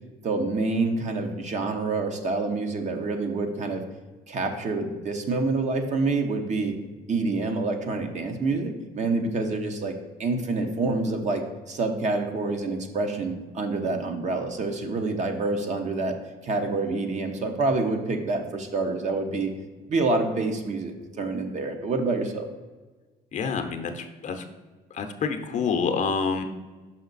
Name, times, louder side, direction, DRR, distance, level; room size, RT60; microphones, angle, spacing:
voice 1, 0.2-3.8 4.3-6.7 7.1-16.2 16.4-19.5 19.9-22.5, right 3 dB, 45° right, 5 dB, 0.9 m, -27 dB
voice 2, 23.3-24.4 24.9-26.4, left 5 dB, 45° left, 6 dB, 0.7 m, -27 dB
5.9 x 5.5 x 4.0 m, 1.3 s
cardioid pair, 110°, 17 cm